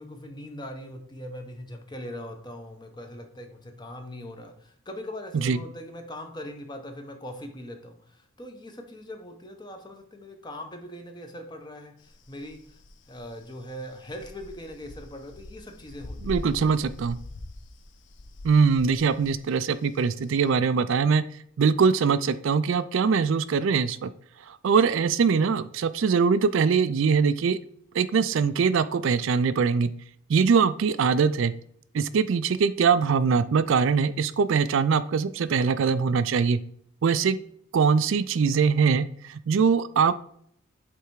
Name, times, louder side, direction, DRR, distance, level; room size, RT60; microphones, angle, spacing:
voice 1, 0.0-12.8 13.1-16.4, left 1 dB, 20° left, 5 dB, 0.9 m, -41 dB
sound 1, 12.0-20.5, left 1 dB, 65° left, 0.6 m, -43 dB
voice 2, 16.2-17.2 18.4-21.2 21.6-24.1 24.5-27.6 27.9-29.9 30.3-31.5 31.9-36.6 37.0-37.4 37.7-40.1, right 5 dB, 70° right, 13 dB, 0.4 m, -22 dB
8.0 x 3.4 x 4.7 m, 0.65 s
head